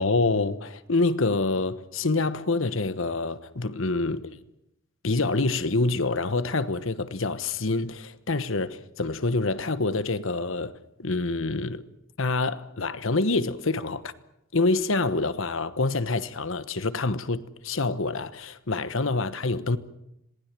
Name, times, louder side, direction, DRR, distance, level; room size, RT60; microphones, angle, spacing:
voice 1, 0.0-4.4 5.0-11.8 12.2-14.1 14.5-19.8, left 3 dB, 65° left, 1.2 m, -26 dB
27.0 x 19.5 x 7.6 m
head